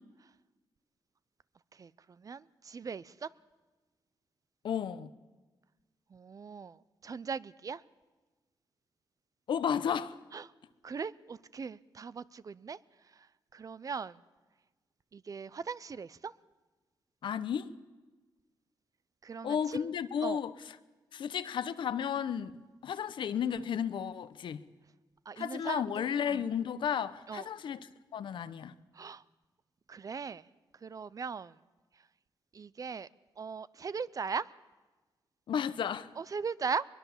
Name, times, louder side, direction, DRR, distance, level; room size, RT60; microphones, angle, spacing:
voice 1, 2.2-3.3 6.1-7.8 10.3-10.5 10.8-12.8 13.5-14.2 15.1-16.3 19.2-19.9 20.2-20.4 25.3-26.5 27.3-27.5 28.9-29.2 29.9-30.5 30.8-31.5 32.5-33.1 33.4-34.5 36.2-36.9, right 5 dB, 45° right, 0.6 m, -39 dB
voice 2, 4.6-5.1 9.5-10.2 17.2-17.7 19.4-20.5 21.1-22.5 22.8-24.6 25.4-28.7 35.5-36.1, left 8 dB, 75° left, 0.9 m, -33 dB
22.0 x 21.5 x 7.3 m
cardioid pair, 85°, 8 cm